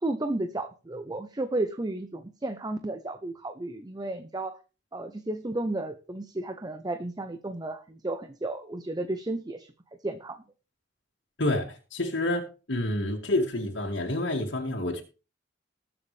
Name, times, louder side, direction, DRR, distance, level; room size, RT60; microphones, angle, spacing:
voice 1, 0.0-4.6 4.9-9.7 10.0-10.4, right 2 dB, 20° right, 8 dB, 0.7 m, -33 dB
voice 2, 11.4-12.4 12.7-15.0, left 1 dB, 85° left, -1 dB, 2.2 m, -28 dB
20.5 x 7.0 x 3.3 m, 0.33 s
head